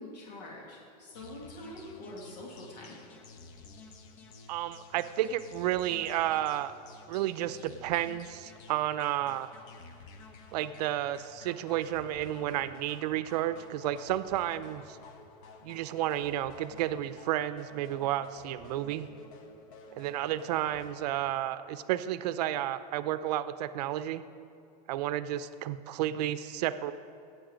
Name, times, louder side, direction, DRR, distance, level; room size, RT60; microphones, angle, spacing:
voice 1, 0.0-3.0, left 1 dB, 85° left, -3 dB, 2.6 m, -45 dB
sound 1, 1.1-20.9, left 4 dB, 55° left, 1.2 m, -52 dB
voice 2, 4.5-6.7 7.1-9.5 10.5-15.0 15.6-19.1 20.0-24.2 24.9-26.9, right 13 dB, 75° right, 13 dB, 0.6 m, -32 dB
16.0 x 7.9 x 5.1 m, 2.6 s
supercardioid pair, 150°, 21 cm